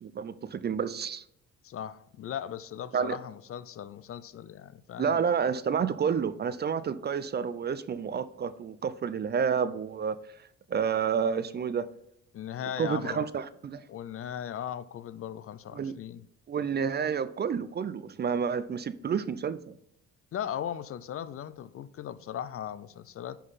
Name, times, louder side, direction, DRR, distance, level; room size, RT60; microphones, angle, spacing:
voice 1, 0.0-1.2 2.9-3.2 5.0-10.2 10.7-11.9 12.8-13.8 15.7-16.0 16.5-19.7, right 7 dB, 35° right, 0.4 m, -29 dB
voice 2, 1.6-5.2 12.3-13.3 13.9-16.3 20.3-23.4, left 9 dB, 50° left, 0.4 m, -38 dB
10.0 x 3.9 x 4.1 m
cardioid pair, 90°, 30 cm